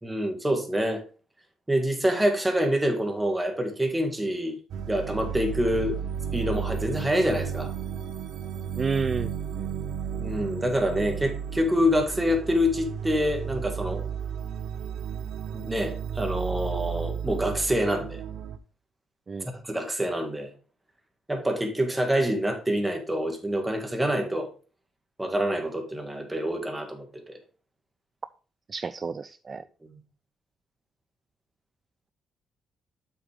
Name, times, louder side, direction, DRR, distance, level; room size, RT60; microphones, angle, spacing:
voice 1, 0.0-1.0 1.7-4.6 4.9-6.0 6.3-7.7 10.2-14.0 15.5-18.2 19.7-20.5 21.3-24.5 25.2-27.4, equal, 10° right, 1.9 m, -26 dB
sound 1, 4.7-18.6, right 7 dB, 80° right, 0.6 m, -33 dB
voice 2, 8.8-9.3 9.6-9.7 19.3-19.5 28.7-29.6, right 4 dB, 35° right, 0.3 m, -30 dB
7.8 x 6.1 x 3.5 m
cardioid pair, 95°, 0 cm